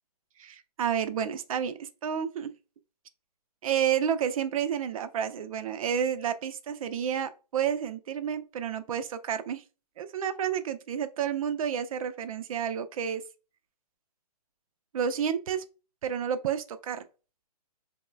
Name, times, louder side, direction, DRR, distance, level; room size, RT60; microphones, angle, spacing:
voice 1, 0.4-2.5 3.6-9.6 10.0-13.2 14.9-15.6 16.0-17.0, right 8 dB, 60° right, 0.4 m, -30 dB
3.0 x 2.0 x 2.3 m
hypercardioid pair, 145°, 20 cm